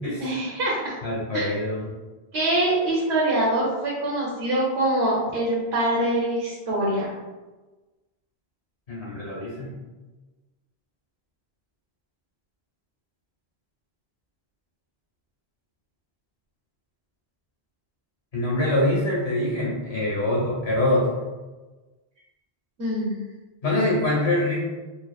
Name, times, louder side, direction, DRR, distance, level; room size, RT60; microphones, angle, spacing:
voice 1, 0.2-1.0 1.3-1.5 2.3-7.1 22.8-23.2, right 1 dB, 85° right, -5 dB, 1.1 m, -24 dB
voice 2, 1.0-1.9 8.9-9.7 18.3-21.1 23.6-24.6, left 1 dB, 75° left, -5 dB, 1.4 m, -24 dB
4.6 x 2.7 x 2.3 m, 1.2 s
omnidirectional pair, 1.1 m